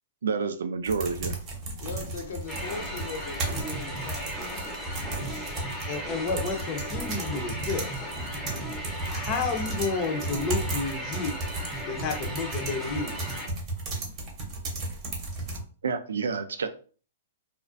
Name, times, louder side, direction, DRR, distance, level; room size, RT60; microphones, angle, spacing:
voice 1, 0.2-1.4 15.8-16.7, right 5 dB, 85° right, 9 dB, 0.3 m, -29 dB
sound 1, 0.8-15.6, right 2 dB, 30° right, 0.8 m, -35 dB
voice 2, 1.7-4.8 5.2-5.6 5.9-6.4, left 4 dB, 70° left, 3 dB, 0.7 m, -40 dB
sound 2, 2.5-13.5, equal, ahead, 0.7 m, -36 dB
voice 3, 5.9-8.0 9.1-11.4 11.8-13.2, left 4 dB, 35° left, 4 dB, 0.6 m, -31 dB
2.4 x 2.1 x 2.5 m, 0.40 s
hypercardioid pair, 135°, 0 cm